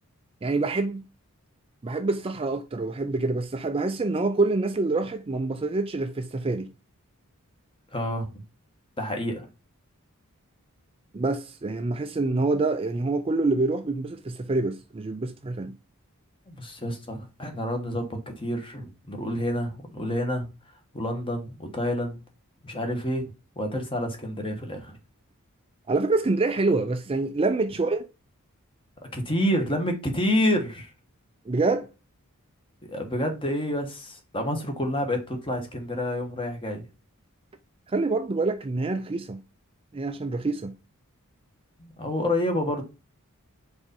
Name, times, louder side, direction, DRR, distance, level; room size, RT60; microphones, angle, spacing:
voice 1, 0.4-1.0 1.8-6.7 11.1-15.7 25.9-28.1 31.5-31.9 37.9-39.4 39.9-40.7, right 3 dB, 25° right, 0.4 m, -26 dB
voice 2, 7.9-8.3 9.0-9.5 16.5-20.5 20.9-22.2 22.6-25.0 29.1-30.9 32.9-36.9 41.8-42.8, left 1 dB, 25° left, 1.3 m, -28 dB
5.1 x 4.2 x 5.3 m
head